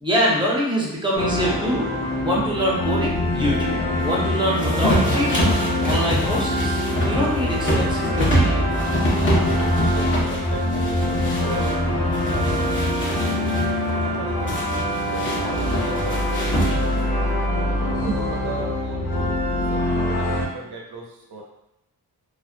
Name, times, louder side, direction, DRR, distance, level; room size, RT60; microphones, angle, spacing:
voice 1, 0.0-1.9 2.2-3.8 4.0-5.3 5.8-6.8 7.0-8.8, equal, 10° right, -5 dB, 0.5 m, -24 dB
sound 1, 1.1-20.5, equal, 75° left, 0.7 m, -24 dB
sound 2, 3.2-16.4, left 2 dB, 50° left, 1.0 m, -30 dB
sound 3, 4.6-11.7 12.1-13.7 14.5-17.1, equal, 30° left, 0.6 m, -26 dB
voice 2, 9.5-12.8 14.0-17.0 17.8-21.4, right 3 dB, 85° right, -2 dB, 0.6 m, -36 dB
2.4 x 2.1 x 2.4 m, 0.85 s
wide cardioid pair, 175°, 38 cm